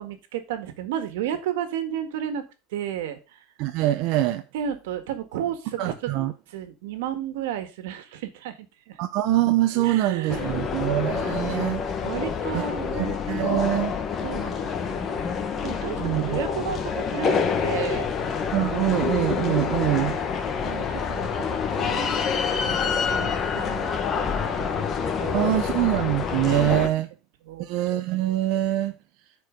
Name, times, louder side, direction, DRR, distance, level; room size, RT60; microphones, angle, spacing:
voice 1, 0.0-3.4 4.5-6.1 6.5-8.6 8.9-9.0 9.7-10.7 12.0-13.0 13.6-13.9 14.2-18.1 20.6-22.2 22.6-23.9 24.2-24.8 25.2-25.6 27.4-27.7, right 10 dB, 85° right, 1.7 m, -33 dB
voice 2, 3.6-4.4 5.8-6.3 9.0-11.8 12.9-13.9 16.0-16.4 18.5-20.2 25.3-27.1 27.6-28.9, right 15 dB, 55° right, 0.7 m, -24 dB
sound 1, 10.3-26.9, left 6 dB, 25° left, 1.2 m, -27 dB
9.5 x 4.7 x 5.2 m
supercardioid pair, 150°, 0 cm